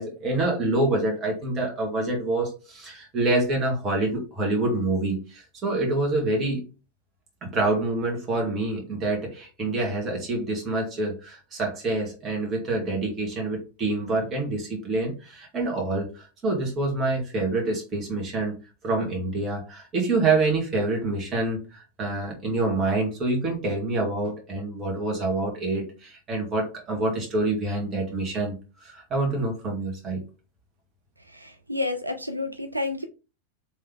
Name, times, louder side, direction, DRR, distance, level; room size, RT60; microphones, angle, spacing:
voice 1, 0.0-6.6 7.4-18.6 18.8-30.2, right 2 dB, 25° right, 0 dB, 1.8 m, -26 dB
voice 2, 31.3-33.1, left 2 dB, 85° right, 6 dB, 0.4 m, -30 dB
3.5 x 3.1 x 3.6 m, 0.31 s
figure-of-eight pair, 90°, 0 cm